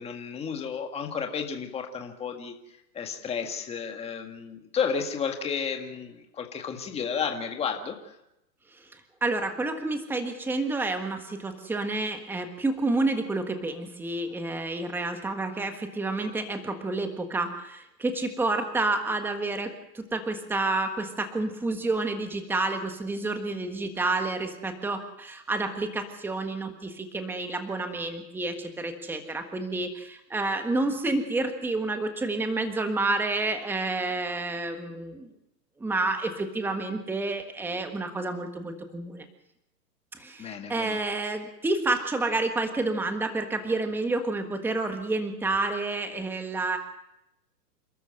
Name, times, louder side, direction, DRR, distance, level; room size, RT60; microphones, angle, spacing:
voice 1, 0.0-2.5 2.9-8.0 40.4-41.0, left 6 dB, 10° left, 4 dB, 1.8 m, -32 dB
voice 2, 9.2-35.3 35.8-39.2 40.2-46.8, right 2 dB, 5° right, 6 dB, 1.5 m, -29 dB
28.0 x 13.0 x 7.8 m, 0.85 s
hypercardioid pair, 145°, 50 cm